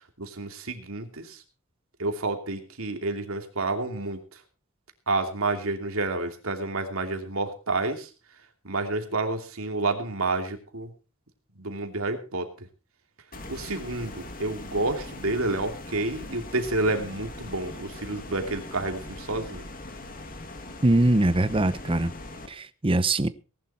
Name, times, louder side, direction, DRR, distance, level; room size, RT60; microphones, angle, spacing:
voice 1, 0.2-1.4 2.0-4.4 5.1-8.1 8.6-10.9 11.6-12.7 13.5-19.6, right 2 dB, 75° right, 5 dB, 2.8 m, -29 dB
sound 1, 13.3-22.5, left 2 dB, 40° left, 2.2 m, -41 dB
voice 2, 20.8-22.1 22.5-23.3, right 2 dB, 25° right, 14 dB, 0.8 m, -22 dB
18.5 x 11.0 x 4.4 m, 0.34 s
head